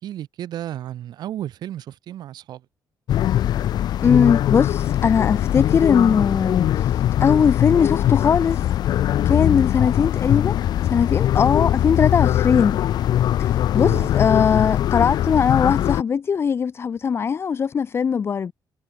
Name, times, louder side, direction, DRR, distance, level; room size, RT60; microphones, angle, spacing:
voice 1, 0.0-2.6 13.8-14.1, right 12 dB, 75° right, 4.2 m, -33 dB
sound 1, 3.1-16.0, left 12 dB, 70° left, 2.0 m, -21 dB
voice 2, 4.0-8.6 9.2-10.5 10.8-12.8 13.4-18.5, left 6 dB, 35° left, 0.8 m, -20 dB
cardioid pair, 145°, 7 cm